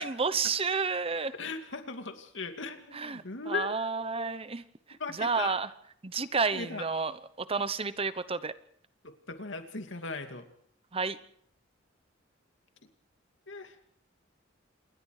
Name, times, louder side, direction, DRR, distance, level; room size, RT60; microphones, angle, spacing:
voice 1, 0.0-1.3 2.9-4.6 5.2-5.7 6.0-7.1 7.4-8.5 10.9-11.2, right 4 dB, 30° right, 14 dB, 0.9 m, -30 dB
voice 2, 1.4-4.4 5.0-5.6 6.5-6.9 9.0-10.5 13.5-13.8, left 4 dB, 70° left, 6 dB, 2.6 m, -38 dB
27.5 x 21.0 x 4.9 m, 0.66 s
head